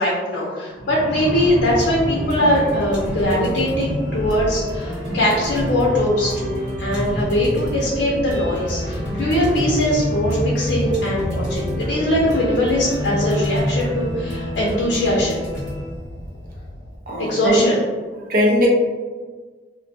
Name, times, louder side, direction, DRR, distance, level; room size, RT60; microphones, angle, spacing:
voice 1, 0.0-15.4 17.2-17.8, left 1 dB, 75° left, -5 dB, 0.5 m, -21 dB
sound 1, 0.8-7.6, equal, 20° right, 1.2 m, -31 dB
sound 2, 1.7-17.0, equal, 75° right, 1.1 m, -27 dB
voice 2, 17.1-17.7 18.3-18.7, equal, 50° right, -2 dB, 0.6 m, -19 dB
2.5 x 2.2 x 2.6 m, 1.4 s
head